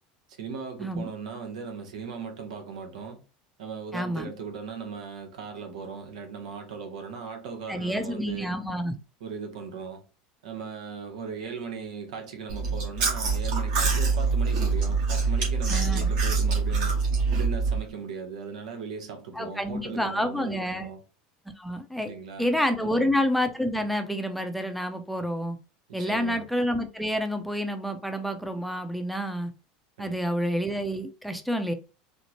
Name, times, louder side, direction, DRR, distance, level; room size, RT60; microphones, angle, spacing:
voice 1, 0.4-3.2 3.6-8.6 9.2-10.0 10.4-17.0 17.3-21.0 22.1-23.1 25.9-26.4 30.0-30.2, right 5 dB, 90° right, 0.9 m, -38 dB
voice 2, 3.9-4.3 7.7-9.0 15.7-16.1 19.3-20.9 21.6-22.1 22.4-25.6 25.9-29.5 30.0-31.7, equal, ahead, 0.6 m, -28 dB
Chewing mastication, 12.5-17.8, right 4 dB, 70° right, 1.8 m, -25 dB
4.3 x 2.0 x 2.9 m
supercardioid pair, 105°, 4 cm